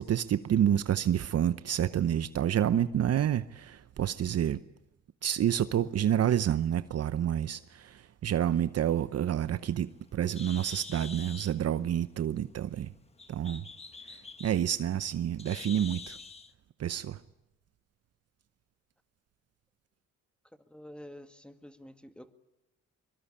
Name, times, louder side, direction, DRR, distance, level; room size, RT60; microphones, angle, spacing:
voice 1, 0.0-4.6 5.2-12.9 13.3-13.6 14.4-16.2 16.8-17.2, right 10 dB, 55° right, 0.8 m, -28 dB
Bird, 9.2-16.5, left 5 dB, 20° left, 1.5 m, -47 dB
voice 2, 20.7-22.3, left 1 dB, 5° left, 2.0 m, -48 dB
23.5 x 23.0 x 8.7 m
cardioid pair, 90°, 30 cm